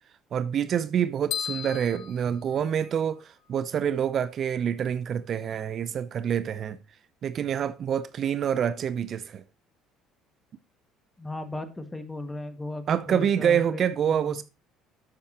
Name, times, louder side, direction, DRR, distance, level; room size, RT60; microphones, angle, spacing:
voice 1, 0.3-6.8 7.2-9.4 12.9-14.4, right 8 dB, 50° right, 0.6 m, -27 dB
sound 1, 1.3-3.2, left 9 dB, 65° left, 1.0 m, -36 dB
voice 2, 11.2-14.4, left 2 dB, 15° left, 1.9 m, -37 dB
11.0 x 8.2 x 2.9 m
hypercardioid pair, 65°, 0 cm